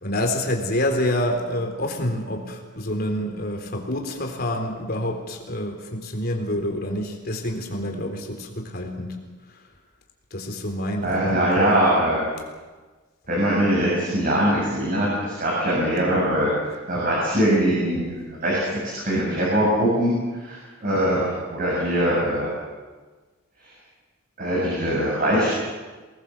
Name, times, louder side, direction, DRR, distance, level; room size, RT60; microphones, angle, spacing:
voice 1, 0.0-9.2 9.5-9.6 10.3-11.5, left 1 dB, 45° left, 3 dB, 3.8 m, -27 dB
voice 2, 11.0-12.3 13.3-16.5 16.9-18.1 18.4-18.6 18.9-22.5 24.4-25.6, right 1 dB, 40° right, -4 dB, 7.4 m, -22 dB
24.5 x 20.0 x 7.3 m, 1.3 s
head